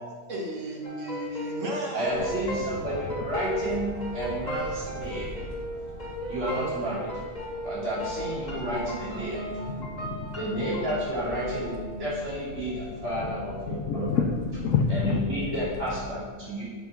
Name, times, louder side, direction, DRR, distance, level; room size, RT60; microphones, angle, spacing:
voice 1, 0.3-2.5, right 1 dB, 90° right, -2 dB, 2.0 m, -34 dB
sound 1, 0.8-11.8, equal, 35° left, 2.2 m, -36 dB
voice 2, 1.9-9.9 10.4-14.2 14.9-16.6, right 1 dB, 70° right, -9 dB, 3.3 m, -32 dB
sound 2, 2.0-16.1, equal, 45° right, 1.2 m, -41 dB
voice 3, 9.8-10.3 13.7-15.2, left 6 dB, 90° left, 3 dB, 1.0 m, -27 dB
7.2 x 5.7 x 6.0 m, 1.5 s
omnidirectional pair, 1.3 m